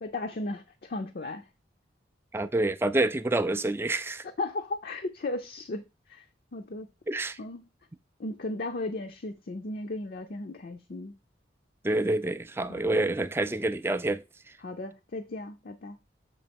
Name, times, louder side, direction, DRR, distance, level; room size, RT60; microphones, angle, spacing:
voice 1, 0.0-1.4 4.4-5.8 6.1-6.3 6.5-6.9 7.4-7.6 8.2-11.1 12.7-13.0 14.6-16.0, left 2 dB, 50° left, 0.5 m, -35 dB
voice 2, 2.3-4.2 7.1-7.4 11.8-14.2, right 2 dB, 15° right, 0.3 m, -27 dB
6.8 x 2.8 x 5.2 m
head